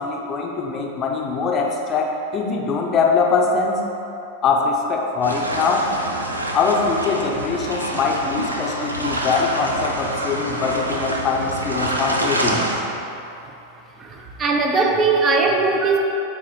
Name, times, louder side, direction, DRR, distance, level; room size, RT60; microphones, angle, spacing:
voice 1, 0.0-3.8 4.4-5.9 6.5-12.6, left 4 dB, 30° left, 0 dB, 0.7 m, -22 dB
sound 1, 5.2-12.8, right 1 dB, 85° right, 0.5 m, -26 dB
voice 2, 14.0-16.0, right 4 dB, 25° right, 2 dB, 0.6 m, -19 dB
8.6 x 3.9 x 3.0 m, 2.8 s
figure-of-eight pair, 90°, 0 cm